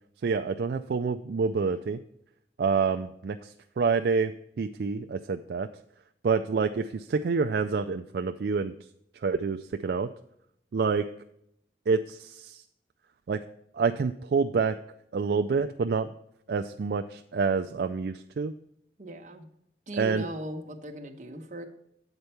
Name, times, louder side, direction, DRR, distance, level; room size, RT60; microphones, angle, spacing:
voice 1, 0.2-2.0 2.6-5.7 6.2-8.7 9.2-10.1 10.7-11.1 11.9-12.6 13.3-13.4 13.7-14.8 15.1-16.1 16.5-18.5 20.0-20.2, right 5 dB, 60° right, 7 dB, 0.3 m, -27 dB
voice 2, 19.0-19.5 19.9-21.7, right 1 dB, 40° right, 4 dB, 1.0 m, -38 dB
8.0 x 4.4 x 6.9 m, 0.74 s
head